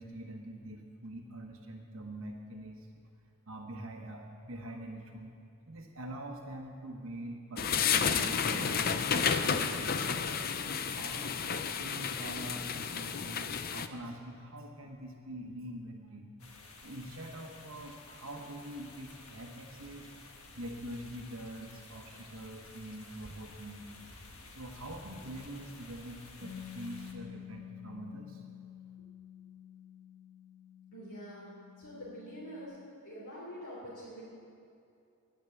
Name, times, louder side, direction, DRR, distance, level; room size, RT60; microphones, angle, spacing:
voice 1, 0.0-2.9 3.5-5.4 5.7-16.3 16.8-20.1 20.5-24.1 24.5-28.4, right 1 dB, 65° right, 2 dB, 1.1 m, -45 dB
sound 1, 7.6-13.9, left 6 dB, 40° left, 0.5 m, -31 dB
sound 2, 16.4-27.1, left 3 dB, 70° left, 1.5 m, -53 dB
Bass guitar, 26.4-32.7, left 9 dB, 25° left, 2.5 m, -49 dB
voice 2, 30.9-31.5 31.8-32.8 33.0-34.2, equal, 90° left, -8 dB, 3.3 m, -45 dB
11.0 x 10.0 x 8.3 m, 2.6 s
head